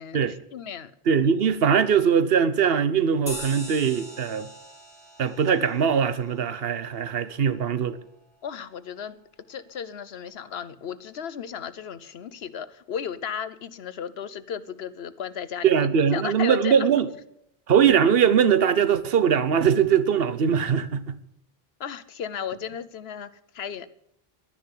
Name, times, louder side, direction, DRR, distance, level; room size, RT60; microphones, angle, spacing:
voice 1, 0.0-0.9 8.4-9.2 9.5-16.9 21.8-23.9, left 8 dB, 80° left, 1.1 m, -35 dB
voice 2, 1.1-4.5 5.2-8.0 15.6-17.1 17.7-21.2, right 7 dB, 70° right, 1.1 m, -21 dB
sound 1, 3.3-8.2, equal, 35° right, 3.4 m, -43 dB
12.0 x 10.5 x 9.9 m
omnidirectional pair, 1.0 m